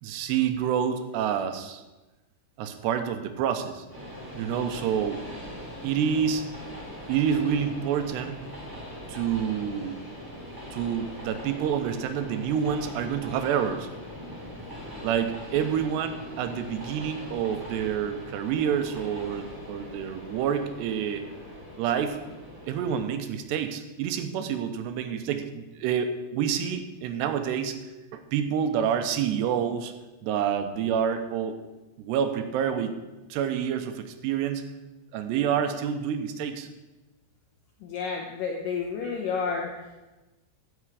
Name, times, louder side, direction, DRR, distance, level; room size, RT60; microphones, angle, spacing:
voice 1, 0.0-1.8 2.6-3.8 4.3-5.2 5.8-6.4 7.1-8.4 9.1-10.0 10.7-13.9 15.0-21.2 21.8-22.2 22.7-27.8 28.1-29.9 30.2-31.6 32.0-33.0 33.3-34.7 35.1-36.7, right 8 dB, 85° right, 8 dB, 3.0 m, -28 dB
Train, 3.9-23.0, left 1 dB, 5° right, 1.7 m, -41 dB
voice 2, 37.8-39.7, left 5 dB, 70° left, 0 dB, 2.2 m, -30 dB
15.5 x 6.4 x 4.9 m, 1.1 s
omnidirectional pair, 4.7 m